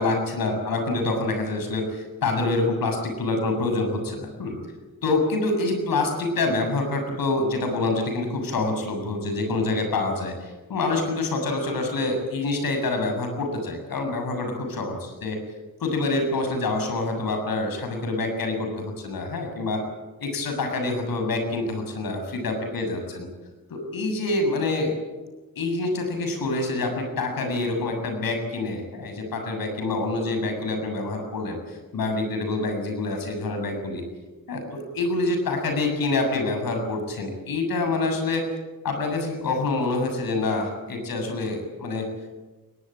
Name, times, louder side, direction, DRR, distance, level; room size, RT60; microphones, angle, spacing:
voice 1, 0.0-4.6 5.0-15.4 15.8-19.8 20.2-23.3 23.7-24.9 25.6-34.0 34.5-38.5 38.8-42.1, left 2 dB, 75° left, 5 dB, 7.3 m, -26 dB
22.5 x 19.5 x 8.9 m, 1.2 s
wide cardioid pair, 115°, 35 cm